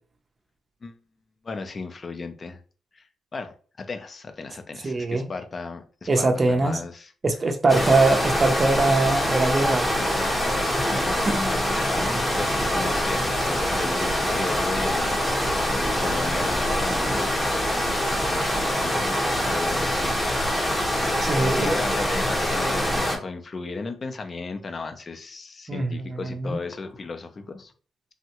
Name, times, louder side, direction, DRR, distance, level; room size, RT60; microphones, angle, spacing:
voice 1, 1.4-2.6 2.9-3.1 3.3-7.1 7.7-7.9 10.9-15.3 15.8-17.2 18.3-20.2 21.4-27.7, left 4 dB, 30° left, 8 dB, 0.4 m, -35 dB
voice 2, 4.8-5.3 6.1-6.8 7.2-9.9 11.3-11.4 21.2-21.7 25.7-26.6, right 2 dB, 30° right, 3 dB, 0.5 m, -22 dB
sound 1, 7.7-23.2, equal, 5° left, 0.8 m, -24 dB
3.5 x 2.1 x 2.8 m, 0.39 s
cardioid pair, 145°, 0 cm